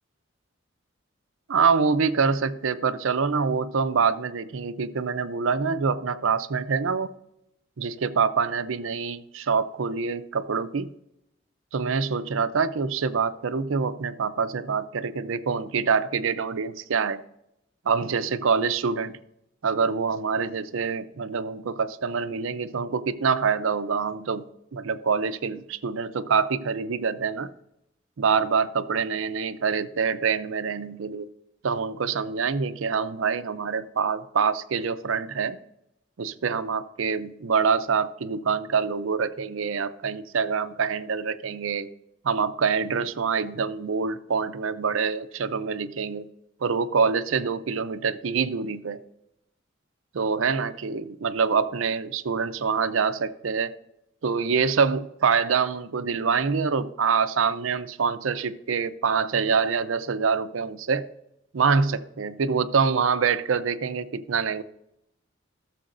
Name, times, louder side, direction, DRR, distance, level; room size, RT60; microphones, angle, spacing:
voice 1, 1.5-7.1 7.8-10.9 11.7-17.2 17.9-19.2 19.6-24.5 24.7-27.5 28.2-31.3 31.6-35.6 36.2-41.9 42.2-46.3 46.6-49.0 50.1-53.7 54.2-61.0 61.5-64.6, right 5 dB, 85° right, 12 dB, 0.5 m, -25 dB
16.5 x 6.9 x 2.6 m, 0.81 s
head